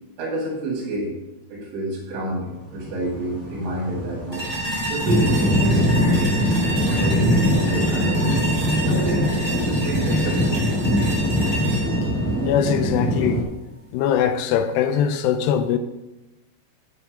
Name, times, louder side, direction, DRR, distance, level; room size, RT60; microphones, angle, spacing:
voice 1, 0.2-1.1 1.5-4.4 4.9-6.5 6.8-8.3 8.8-10.6, right 1 dB, 85° right, -5 dB, 4.6 m, -29 dB
sound 1, 2.7-13.4, equal, 60° right, 0.8 m, -22 dB
sound 2, 4.3-13.4, right 1 dB, 5° right, 2.6 m, -30 dB
voice 2, 12.4-13.4 13.9-15.8, left 8 dB, 80° left, 9 dB, 2.6 m, -21 dB
8.9 x 7.6 x 5.2 m, 1.0 s
omnidirectional pair, 5.1 m